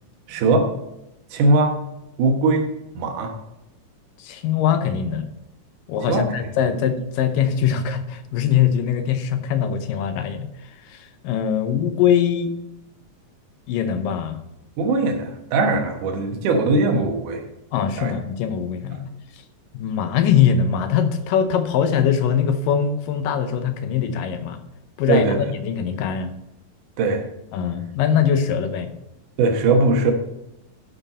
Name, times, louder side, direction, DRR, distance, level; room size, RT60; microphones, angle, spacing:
voice 1, 0.3-0.7 1.3-1.8 2.2-2.7 3.0-3.3 6.1-6.3 14.8-17.4 18.0-18.1 25.1-25.4 27.0-27.3 29.4-30.1, right 3 dB, 75° right, 3 dB, 2.7 m, -20 dB
voice 2, 4.2-5.3 5.9-10.5 10.9-12.5 13.7-14.4 17.7-19.1 19.7-24.6 25.0-26.3 27.5-28.9, left 8 dB, 90° left, 8 dB, 2.5 m, -22 dB
13.0 x 5.4 x 4.1 m, 0.87 s
omnidirectional pair, 3.8 m